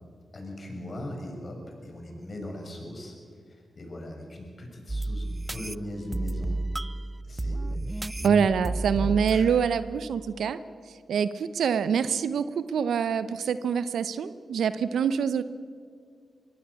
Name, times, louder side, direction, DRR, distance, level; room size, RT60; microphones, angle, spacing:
voice 1, 0.3-3.1 3.8-6.6 7.2-9.5, left 1 dB, 45° left, 2 dB, 6.1 m, -40 dB
sound 1, 4.9-10.5, right 2 dB, 25° right, 0.4 m, -32 dB
voice 2, 8.2-10.6 11.1-15.4, right 7 dB, 75° right, 14 dB, 0.7 m, -25 dB
23.0 x 17.0 x 7.0 m, 2.1 s
supercardioid pair, 40°, 0 cm